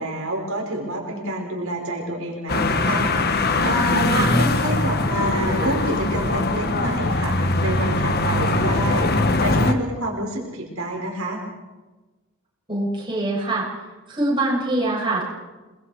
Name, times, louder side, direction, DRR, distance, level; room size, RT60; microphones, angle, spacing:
voice 1, 0.0-3.1 3.6-9.1 9.4-11.4, right 1 dB, 80° right, 0 dB, 4.7 m, -28 dB
sound 1, 2.5-9.7, left 2 dB, 50° left, 1.5 m, -21 dB
voice 2, 12.7-13.6 14.1-15.2, right 2 dB, 25° right, -5 dB, 8.0 m, -23 dB
29.0 x 21.0 x 4.9 m, 1.2 s
head